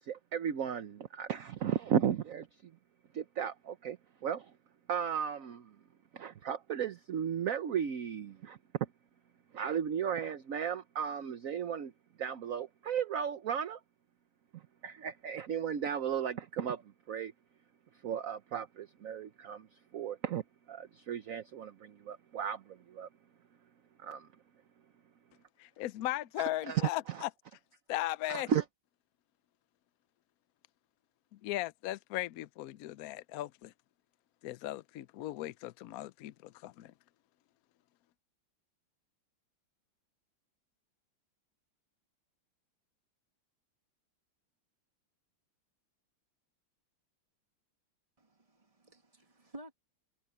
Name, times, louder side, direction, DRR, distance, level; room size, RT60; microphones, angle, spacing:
voice 1, 0.0-2.7 3.1-4.6 4.9-5.8 6.1-8.9 9.5-11.9 12.2-13.8 14.5-17.3 17.9-23.1 24.0-24.3 26.4-27.2 28.3-28.6, right 8 dB, 55° right, 1.1 m, -35 dB
voice 2, 25.6-27.3 27.9-28.5 31.3-33.7 34.4-36.9, left 15 dB, 80° left, 0.8 m, -37 dB
voice 3, 48.2-49.7, right 1 dB, 20° right, 2.2 m, -52 dB
omnidirectional pair, 2.1 m